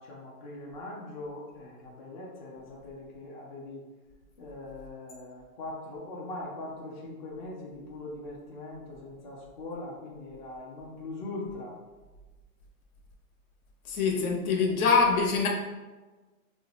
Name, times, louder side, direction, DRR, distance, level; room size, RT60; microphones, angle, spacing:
voice 1, 0.0-3.9 4.4-11.8, left 2 dB, 35° left, -4 dB, 0.4 m, -41 dB
voice 2, 13.8-15.5, left 5 dB, 65° left, 1 dB, 0.9 m, -24 dB
2.5 x 2.1 x 3.8 m, 1.2 s
hypercardioid pair, 150°, 44 cm